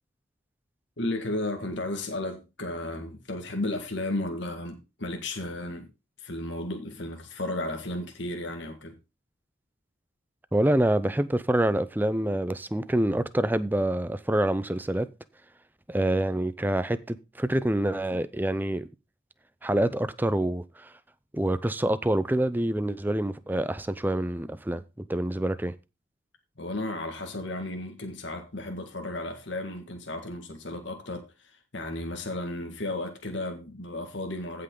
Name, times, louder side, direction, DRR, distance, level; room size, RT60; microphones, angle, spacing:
voice 1, 1.0-5.9 6.2-8.9 26.6-34.6, left 2 dB, 70° left, 1.9 m, -34 dB
voice 2, 10.5-15.1 15.9-18.9 19.6-20.9 21.3-24.8 25.1-25.7, right 1 dB, 10° right, 0.5 m, -26 dB
15.0 x 5.7 x 3.8 m
head